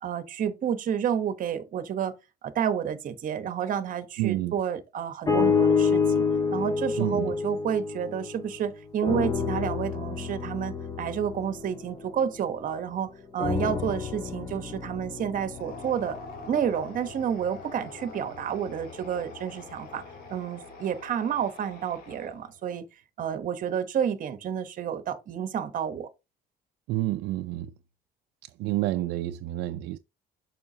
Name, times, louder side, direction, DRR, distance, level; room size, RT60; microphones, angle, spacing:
voice 1, 0.0-2.1 2.4-6.3 6.5-16.2 16.5-20.0 20.3-22.8 23.2-26.1, right 8 dB, 55° right, 1.0 m, -30 dB
voice 2, 4.2-4.5 7.0-7.3 26.9-27.7 28.6-30.0, right 16 dB, 85° right, 0.4 m, -29 dB
sound 1, 5.3-8.6 9.0-12.8 13.4-17.6 18.3-18.4, left 5 dB, 25° left, 1.4 m, -28 dB
sound 2, 15.4-22.6, left 3 dB, 65° left, 2.8 m, -45 dB
7.0 x 5.8 x 2.7 m
cardioid pair, 110°, 17 cm